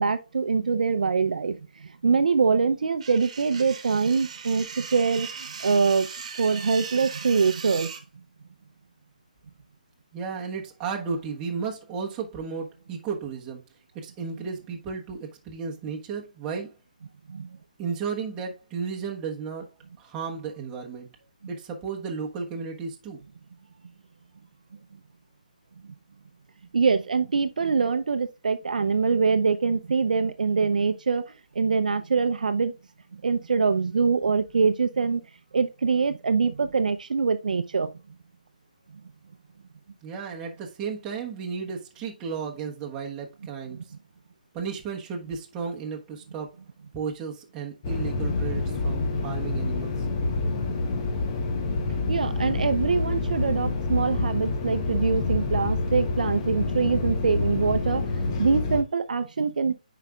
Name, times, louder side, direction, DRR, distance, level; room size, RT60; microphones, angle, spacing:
voice 1, 0.0-6.1 6.4-7.9 17.3-17.6 26.7-31.2 31.5-32.7 33.2-35.2 35.5-37.9 52.0-59.7, right 5 dB, 70° right, 0.6 m, -24 dB
sound 1, 3.0-8.0, right 6 dB, 50° right, 1.3 m, -39 dB
voice 2, 10.1-13.6 14.0-16.7 17.8-19.6 20.0-21.1 21.5-23.2 40.0-43.8 44.5-46.5 46.9-50.1, right 5 dB, 15° right, 1.2 m, -34 dB
sound 2, 47.8-58.8, left 3 dB, 30° left, 1.1 m, -27 dB
8.9 x 5.0 x 2.3 m
figure-of-eight pair, 145°, 5 cm